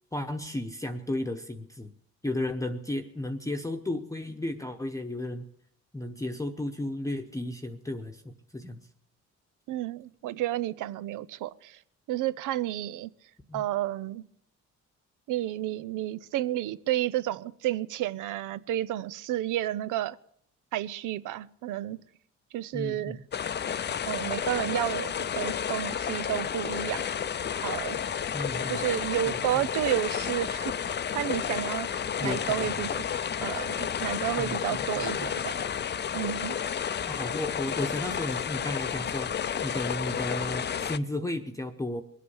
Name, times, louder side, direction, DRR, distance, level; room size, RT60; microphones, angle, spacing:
voice 1, 0.1-1.9 2.2-5.4 5.9-8.8 13.5-13.6 22.7-23.2 28.3-28.8 29.2-29.6 32.2-32.7 34.4-35.3 37.1-42.0, left 1 dB, 10° left, 1.0 m, -34 dB
voice 2, 9.7-11.8 12.1-13.1 13.5-14.2 15.3-20.2 20.7-22.0 22.5-23.2 24.1-27.0 27.6-28.0 28.7-31.9 32.2-33.0 33.4-35.6 36.1-36.6, right 13 dB, 85° right, 0.6 m, -31 dB
sound 1, 23.3-41.0, left 8 dB, 35° left, 0.6 m, -31 dB
21.5 x 8.5 x 7.1 m
cardioid pair, 90°, 30 cm